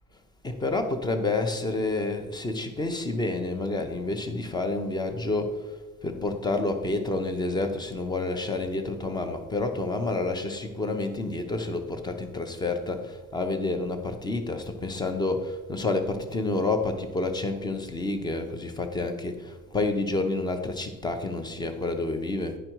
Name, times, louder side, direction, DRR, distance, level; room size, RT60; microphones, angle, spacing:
voice 1, 0.4-5.5 6.0-22.6, left 2 dB, 10° left, 7 dB, 0.6 m, -29 dB
10.0 x 5.1 x 4.5 m, 1.2 s
cardioid pair, 160°, 34 cm